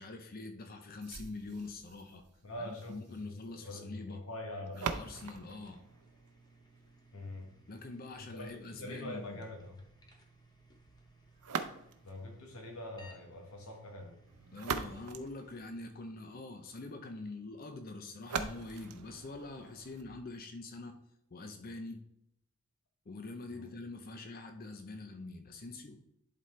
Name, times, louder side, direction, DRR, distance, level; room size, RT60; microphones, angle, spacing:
voice 1, 0.0-2.2 2.6-4.2 4.6-5.8 7.7-9.4 14.5-21.0 21.3-22.0 23.1-26.0, left 2 dB, 40° left, 6 dB, 0.6 m, -45 dB
sound 1, 1.0-7.0 11.4-12.2 14.3-16.2 18.2-20.2, right 5 dB, 90° right, 0.6 m, -42 dB
voice 2, 2.4-4.8 7.1-7.5 8.2-9.8 12.0-14.1 23.5-23.7, left 1 dB, 70° left, 1 dB, 1.2 m, -44 dB
sound 2, 5.1-15.7, right 1 dB, 20° left, 0.9 m, -62 dB
11.0 x 4.2 x 3.2 m, 0.79 s
head